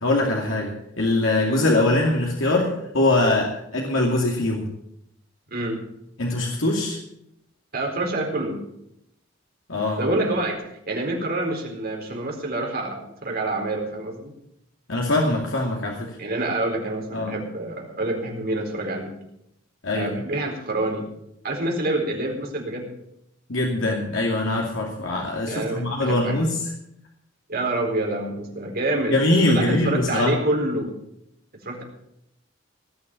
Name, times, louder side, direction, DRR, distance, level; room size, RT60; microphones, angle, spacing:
voice 1, 0.0-4.7 6.2-7.0 9.7-10.0 14.9-16.1 17.1-17.3 19.8-20.1 23.5-26.7 29.1-30.3, left 2 dB, 85° left, -1 dB, 2.5 m, -22 dB
voice 2, 5.5-5.8 7.7-8.6 10.0-14.3 16.2-19.1 19.9-21.1 21.4-22.9 25.5-26.4 27.5-29.2 29.5-30.9 31.6-31.8, right 2 dB, 50° right, 0 dB, 4.2 m, -27 dB
18.5 x 6.8 x 8.4 m, 0.78 s
head